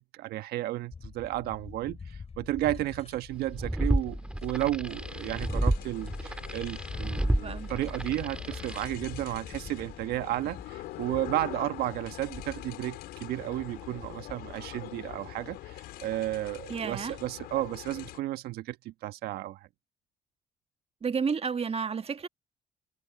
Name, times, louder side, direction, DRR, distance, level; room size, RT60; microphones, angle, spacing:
voice 1, 0.0-19.7, right 15 dB, 75° right, 1.4 m, -33 dB
sound 1, 0.9-15.1, left 5 dB, 40° left, 4.9 m, -46 dB
sound 2, 3.4-8.9, right 1 dB, 5° right, 2.5 m, -31 dB
sound 3, 4.8-18.2, left 16 dB, 75° left, 5.6 m, -44 dB
voice 2, 16.7-17.1 21.0-22.3, right 6 dB, 35° right, 1.5 m, -31 dB
hypercardioid pair, 55°, 17 cm